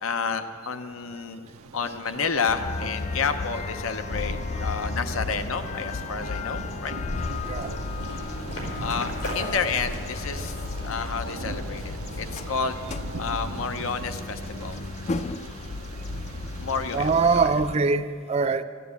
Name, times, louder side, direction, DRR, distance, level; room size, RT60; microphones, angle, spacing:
voice 1, 0.0-1.5 1.7-6.9 8.8-10.5 10.8-12.8 13.2-14.8 16.6-17.5, left 5 dB, 70° left, 0.7 m, -30 dB
Thunder, 1.5-17.5, right 4 dB, 90° right, 0.6 m, -42 dB
sound 1, 2.5-17.8, left 3 dB, 35° left, 0.4 m, -34 dB
sound 2, 3.9-14.6, equal, 90° left, 4.5 m, -40 dB
voice 2, 16.9-18.6, right 4 dB, 30° right, 0.4 m, -23 dB
14.0 x 9.3 x 8.2 m
head